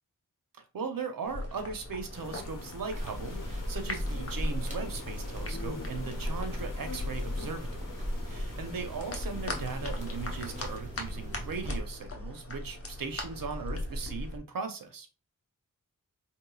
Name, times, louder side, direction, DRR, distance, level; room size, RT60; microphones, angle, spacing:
voice 1, 0.5-7.9 8.2-15.2, right 5 dB, 85° right, 0.7 m, -38 dB
sound 1, 1.2-14.4, left 2 dB, 45° left, 1.0 m, -40 dB
sound 2, 2.1-10.8, left 3 dB, 70° left, 0.9 m, -46 dB
sound 3, 2.9-11.8, equal, 20° right, 1.5 m, -37 dB
4.6 x 3.1 x 2.3 m
cardioid pair, 50°, 33 cm